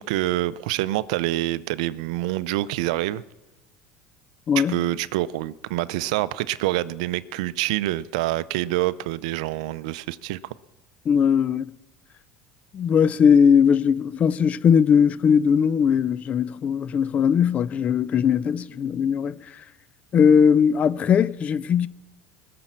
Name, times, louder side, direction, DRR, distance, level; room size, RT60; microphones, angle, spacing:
voice 1, 0.0-3.2 4.6-10.4, right 16 dB, 80° right, 0.5 m, -26 dB
voice 2, 11.1-11.7 12.7-19.4 20.1-21.9, left 7 dB, 40° left, 0.5 m, -19 dB
20.0 x 6.8 x 7.4 m
supercardioid pair, 100°, 4 cm